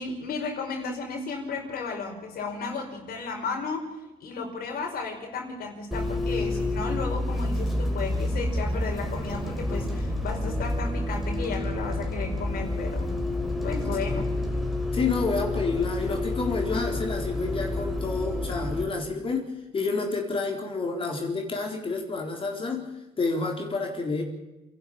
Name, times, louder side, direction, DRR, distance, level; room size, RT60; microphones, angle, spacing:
voice 1, 0.0-3.9 4.2-13.2 13.6-14.3, left 4 dB, 60° left, 1 dB, 5.0 m, -34 dB
Bus, 5.9-18.8, left 2 dB, ahead, 4.2 m, -29 dB
voice 2, 14.9-22.9 23.2-24.2, left 4 dB, 30° left, 2 dB, 4.1 m, -29 dB
27.5 x 12.0 x 8.8 m, 1.0 s
cardioid pair, 110°, 17 cm